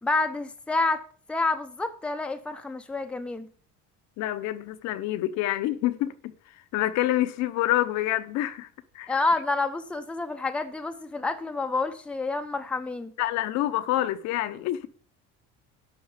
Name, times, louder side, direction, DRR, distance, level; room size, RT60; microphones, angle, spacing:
voice 1, 0.0-1.0 1.3-3.5 9.1-13.1, left 3 dB, 5° left, 0.7 m, -28 dB
voice 2, 4.2-6.3 6.7-8.7 8.9-9.1 13.2-14.9, left 14 dB, 65° left, 0.9 m, -27 dB
11.5 x 4.6 x 8.1 m
cardioid pair, 155°, 30 cm